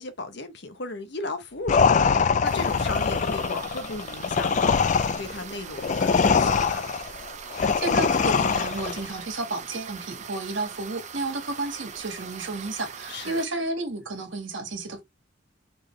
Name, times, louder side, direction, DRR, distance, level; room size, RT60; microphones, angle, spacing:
voice 1, 0.0-6.9 13.1-13.4, left 2 dB, 60° left, 1.0 m, -36 dB
sound 1, 1.7-9.1, left 5 dB, 40° left, 0.4 m, -23 dB
sound 2, 2.4-13.5, right 6 dB, 40° right, 0.6 m, -41 dB
voice 2, 7.4-15.0, right 2 dB, 70° right, 1.8 m, -32 dB
4.4 x 3.4 x 3.2 m
head